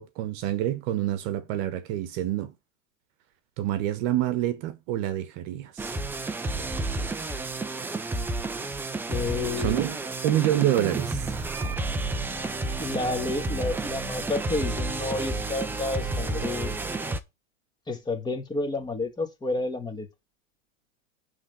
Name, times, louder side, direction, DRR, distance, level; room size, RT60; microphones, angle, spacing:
voice 1, 0.0-2.5 3.6-5.9 9.6-10.0 10.2-11.3, right 13 dB, 40° right, 1.2 m, -27 dB
sound 1, 5.8-17.2, right 2 dB, 5° right, 0.5 m, -31 dB
voice 2, 9.1-10.0 12.8-16.8 17.9-20.1, left 3 dB, 10° left, 1.7 m, -30 dB
9.9 x 3.7 x 6.8 m
hypercardioid pair, 130°, 39 cm